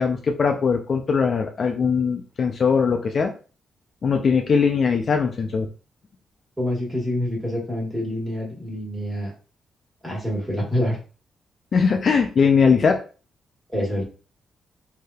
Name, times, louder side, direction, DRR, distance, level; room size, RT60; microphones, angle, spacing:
voice 1, 0.0-3.3 4.0-5.7 11.7-13.0, left 5 dB, 45° left, 4 dB, 0.4 m, -20 dB
voice 2, 6.6-9.3 10.0-11.0 13.7-14.0, left 1 dB, 10° right, -4 dB, 1.4 m, -26 dB
3.3 x 2.7 x 2.3 m, 0.36 s
cardioid pair, 130°, 0 cm